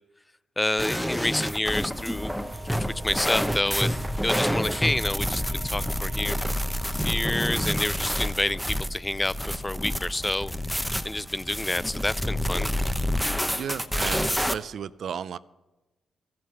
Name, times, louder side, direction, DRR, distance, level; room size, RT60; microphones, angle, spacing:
voice 1, 0.6-2.3 2.6-3.9 4.2-6.4 6.9-12.7, left 2 dB, 15° left, 20 dB, 0.3 m, -29 dB
sound 1, 0.8-14.5, equal, ahead, 0.7 m, -28 dB
Wind instrument woodwind instrument, 2.1-7.9, right 5 dB, 35° right, 1.2 m, -48 dB
sound 2, 3.5-14.1, left 3 dB, 50° left, 3.9 m, -50 dB
voice 2, 13.5-15.4, right 8 dB, 65° right, 17 dB, 0.4 m, -34 dB
13.5 x 7.6 x 7.1 m, 1.1 s
supercardioid pair, 60°, 0 cm